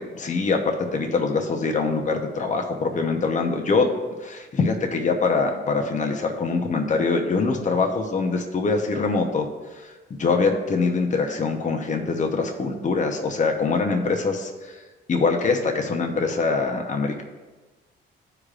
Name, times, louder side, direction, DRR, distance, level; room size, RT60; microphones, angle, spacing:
voice 1, 0.0-3.9 4.2-14.8 15.1-17.2, left 4 dB, 40° left, 3 dB, 0.9 m, -24 dB
13.5 x 4.9 x 2.5 m, 1.3 s
cardioid pair, 90°, 20 cm